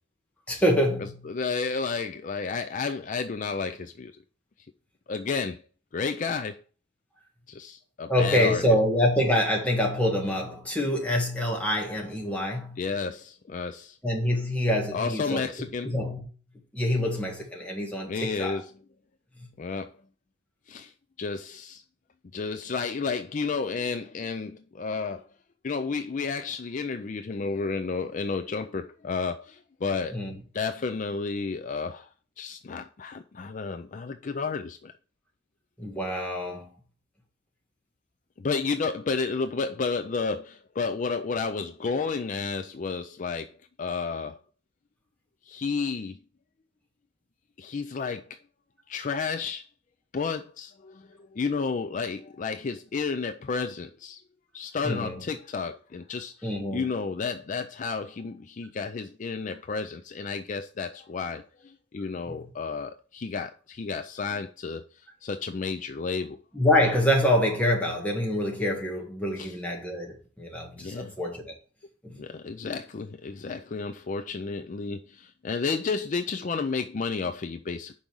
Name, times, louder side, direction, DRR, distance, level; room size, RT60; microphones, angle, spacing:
voice 1, 0.5-1.3 8.1-12.9 14.0-16.2 16.7-18.6 19.4-19.5 30.1-30.4 35.8-36.7 54.8-55.2 56.4-56.9 62.3-62.5 66.5-71.5 72.0-72.2, left 1 dB, 5° left, 1.7 m, -26 dB
voice 2, 1.3-4.1 5.1-5.6 5.9-6.6 7.5-8.6 12.8-14.0 14.9-15.9 18.1-18.6 19.6-19.9 20.7-20.9 21.2-21.8 22.3-25.3 25.6-30.2 30.5-32.1 32.4-34.9 38.4-43.5 43.8-44.4 45.5-46.2 47.6-48.4 48.9-49.6 50.1-54.2 54.5-64.8 65.2-66.4 69.4-69.5 70.8-71.1 72.2-77.9, left 4 dB, 45° left, 0.4 m, -31 dB
5.4 x 5.0 x 6.1 m
head